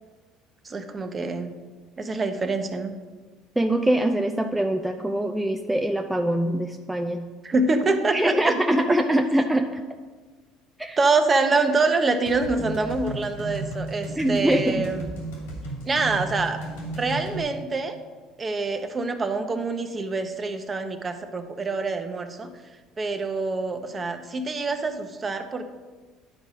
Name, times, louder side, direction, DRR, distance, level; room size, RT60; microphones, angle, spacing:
voice 1, 0.6-1.5 2.0-2.9 7.4-9.0 11.0-15.1 15.8-16.6 17.0-18.0 18.4-22.5 23.0-25.7, right 3 dB, 30° right, 7 dB, 0.9 m, -25 dB
voice 2, 3.6-7.2 8.1-9.8 10.8-11.0 14.2-14.9, right 1 dB, 5° right, 4 dB, 0.5 m, -23 dB
sound 1, 12.3-17.4, right 1 dB, 90° left, 2.2 m, -34 dB
10.0 x 4.1 x 5.0 m, 1.4 s
hypercardioid pair, 75°, 0 cm